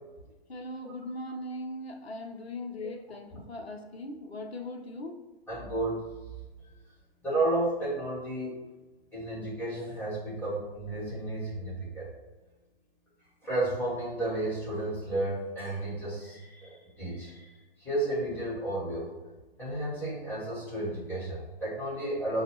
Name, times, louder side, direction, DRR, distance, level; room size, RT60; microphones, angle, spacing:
voice 1, 0.5-5.2, left 1 dB, 85° left, 4 dB, 0.8 m, -39 dB
voice 2, 5.5-6.0 7.2-8.6 9.1-12.1 13.4-17.5 17.8-19.1 19.6-22.4, right 2 dB, 5° left, -9 dB, 1.5 m, -32 dB
6.1 x 2.3 x 3.0 m, 1.2 s
figure-of-eight pair, 135°, 31 cm